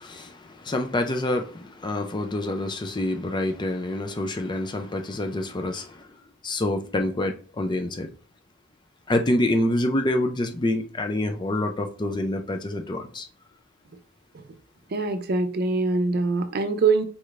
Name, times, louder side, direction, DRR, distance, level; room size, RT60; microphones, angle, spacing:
voice 1, 0.0-6.1 6.4-8.1 9.1-13.3, left 1 dB, 20° left, 0.5 m, -27 dB
voice 2, 14.9-17.0, right 4 dB, 50° right, 0.6 m, -23 dB
4.8 x 4.2 x 2.5 m
head